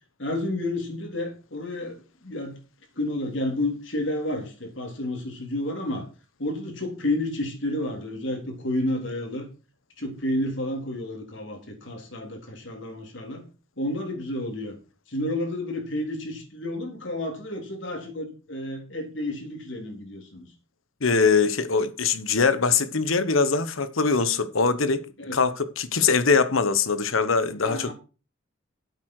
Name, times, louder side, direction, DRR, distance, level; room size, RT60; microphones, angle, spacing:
voice 1, 0.2-2.6 3.0-6.1 6.4-9.5 10.0-13.4 13.8-14.7 15.1-20.5 25.2-25.4 27.6-27.9, left 1 dB, 70° left, 3.7 m, -30 dB
voice 2, 21.0-25.1 25.3-27.9, left 4 dB, 90° left, 1.1 m, -22 dB
11.0 x 8.2 x 4.8 m
head